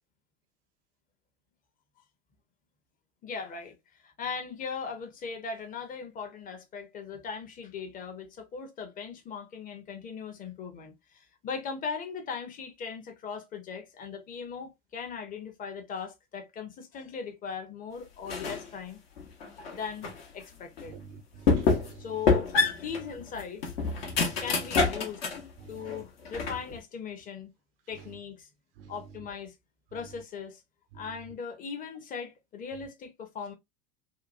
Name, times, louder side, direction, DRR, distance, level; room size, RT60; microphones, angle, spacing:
voice 1, 3.2-3.7 4.0-19.0 19.7-20.1 20.3-20.9 21.4-21.5 22.0-22.6 22.8-23.6 24.4-25.2 25.7-27.5 27.9-28.5 28.9-29.5 29.9-30.6 30.9-33.5, left 6 dB, 25° left, 0.8 m, -39 dB
sound 1, 18.3-18.7 19.2-20.2 20.8-20.9 21.5-22.0 22.3-25.5 25.9-26.8, left 4 dB, 65° left, 1.0 m, -27 dB
voice 2, 20.9-22.0 24.0-24.4 25.6-25.9 28.8-28.9, right 6 dB, 65° right, 0.5 m, -48 dB
2.8 x 2.2 x 2.5 m
figure-of-eight pair, 80°, 32 cm